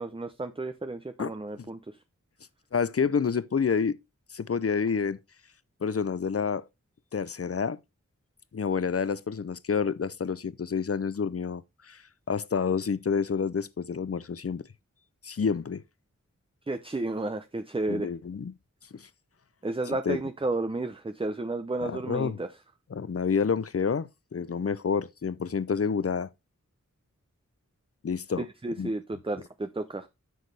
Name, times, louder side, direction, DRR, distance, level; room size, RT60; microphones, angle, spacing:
voice 1, 0.0-2.0 16.7-18.1 19.6-22.5 28.4-30.1, right 2 dB, 20° right, 0.6 m, -32 dB
voice 2, 2.7-4.0 4.3-5.2 5.8-6.6 7.1-7.8 8.5-12.0 12.3-14.7 15.2-15.8 17.9-18.5 18.9-19.1 20.1-20.2 21.8-22.4 22.9-26.3 28.0-28.4 28.8-28.9, left 6 dB, 50° left, 0.6 m, -28 dB
9.2 x 6.4 x 3.3 m
wide cardioid pair, 65°, 30 cm